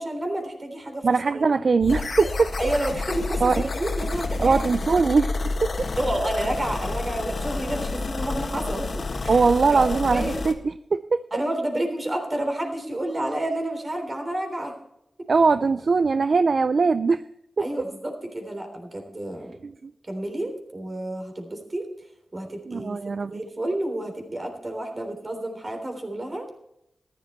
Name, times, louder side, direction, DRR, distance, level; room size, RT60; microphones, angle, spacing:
voice 1, 0.0-1.1 1.3-1.5 2.6-4.7 6.0-9.4 9.7-10.4 11.3-14.7 15.2-15.3 17.6-19.5 20.1-21.9 22.3-23.0 23.3-26.5, right 1 dB, 35° right, 4 dB, 3.6 m, -30 dB
voice 2, 1.0-2.5 3.0-3.1 3.4-3.5 4.4-5.9 9.3-11.3 15.3-17.2 19.6-19.9 22.7-23.4, right 4 dB, 60° right, 14 dB, 0.4 m, -21 dB
sound 1, 1.8-10.5, left 3 dB, 60° left, 1.6 m, -29 dB
14.5 x 11.5 x 4.3 m, 0.79 s
cardioid pair, 70°, 0 cm